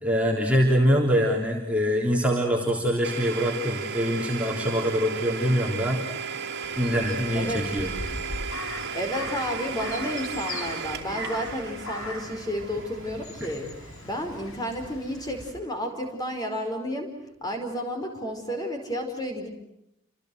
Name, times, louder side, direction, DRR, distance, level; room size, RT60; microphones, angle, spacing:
voice 1, 0.0-6.0 6.8-7.9, equal, 5° right, -2 dB, 3.6 m, -24 dB
Domestic sounds home sounds, 3.0-14.7, right 6 dB, 50° right, 2.9 m, -35 dB
Crow, 6.6-15.5, left 2 dB, 75° left, 6.7 m, -39 dB
voice 2, 7.3-7.6 8.9-13.7 14.0-17.1 17.4-19.5, equal, 20° left, 4 dB, 5.1 m, -31 dB
29.5 x 27.5 x 6.4 m, 0.83 s
head